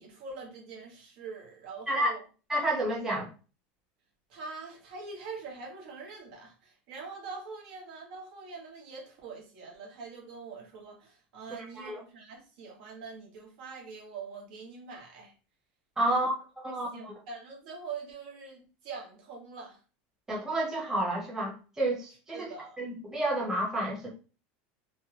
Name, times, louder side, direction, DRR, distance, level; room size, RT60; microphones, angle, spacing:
voice 1, 0.0-2.2 4.3-15.3 16.0-16.3 16.6-19.8 22.3-22.9, right 4 dB, 70° right, 1.2 m, -44 dB
voice 2, 2.5-3.3 11.6-12.0 16.0-16.3 16.6-17.1 20.3-24.1, right 1 dB, 10° right, 0.9 m, -30 dB
3.3 x 2.1 x 2.8 m
supercardioid pair, 150°, 5 cm